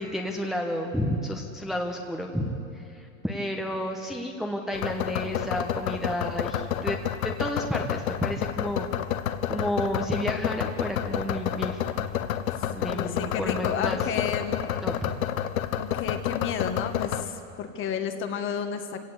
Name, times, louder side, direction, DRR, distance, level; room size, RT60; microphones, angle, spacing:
voice 1, 0.0-8.9 9.5-12.1 12.7-14.0 14.8-15.1, equal, ahead, 1 dB, 1.2 m, -31 dB
sound 1, 4.7-17.2, left 10 dB, 80° left, 1.4 m, -29 dB
voice 2, 12.9-14.6 15.7-19.0, left 7 dB, 30° left, 7 dB, 1.6 m, -32 dB
27.0 x 17.5 x 8.2 m, 2.8 s
supercardioid pair, 140°, 41 cm